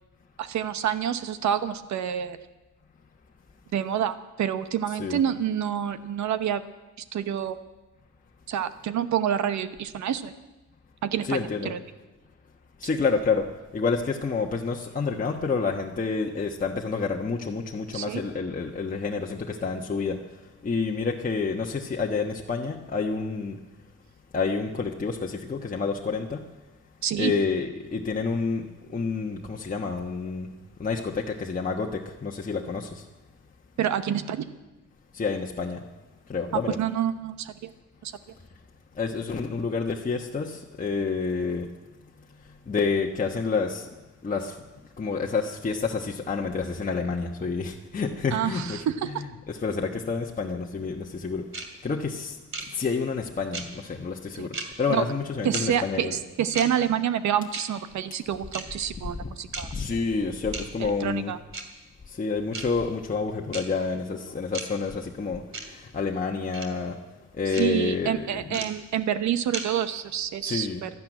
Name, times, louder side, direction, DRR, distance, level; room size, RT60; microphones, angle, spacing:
voice 1, 0.4-2.4 3.7-6.6 7.1-7.6 8.5-10.3 11.0-11.8 17.9-18.2 27.0-27.3 33.8-34.5 36.7-37.7 38.0-38.1 48.3-49.1 54.4-54.5 54.9-55.1 55.4-59.7 60.8-61.4 67.6-70.9, right 9 dB, 70° right, 11 dB, 1.0 m, -28 dB
voice 2, 11.2-11.7 12.8-13.5 13.7-20.2 20.6-23.6 24.3-26.5 27.2-30.5 30.8-33.0 35.1-35.8 36.3-36.8 39.0-41.7 42.7-43.9 44.2-44.5 45.0-48.8 49.1-51.5 51.8-52.4 52.7-56.2 59.2-59.3 59.7-61.3 62.1-65.4 65.9-67.0 67.4-68.6 70.4-70.9, left 4 dB, 25° left, 0 dB, 1.2 m, -29 dB
sound 1, 51.5-51.7 52.5-52.7 53.5-53.7 54.5-54.7 55.5-55.6 56.5-56.7 57.5-57.7 58.5-58.6 59.5-59.6 60.5-60.7 61.5-61.6 62.5-62.6 63.5-63.6 64.5-64.7 65.5-65.7 66.5-66.7 67.5-67.7 68.5-68.7 69.5-69.6, right 3 dB, 45° right, 2.6 m, -33 dB
12.5 x 12.0 x 9.1 m, 1.1 s
cardioid pair, 90°, 30 cm